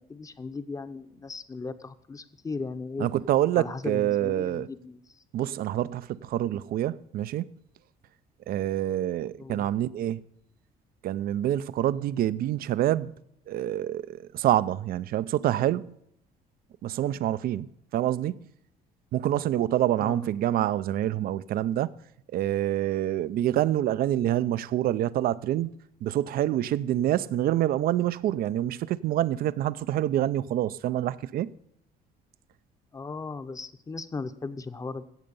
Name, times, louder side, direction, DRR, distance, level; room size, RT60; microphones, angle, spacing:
voice 1, 0.0-3.1 3.5-5.2 9.4-9.7 20.0-20.2 32.9-35.0, left 4 dB, 20° left, 0.8 m, -37 dB
voice 2, 3.0-4.7 5.3-7.6 8.5-10.2 11.0-13.1 13.5-16.0 16.8-18.5 19.1-21.9 22.3-25.7 26.0-31.5, right 12 dB, 60° right, 0.5 m, -27 dB
15.5 x 7.7 x 5.4 m
cardioid pair, 110°, 17 cm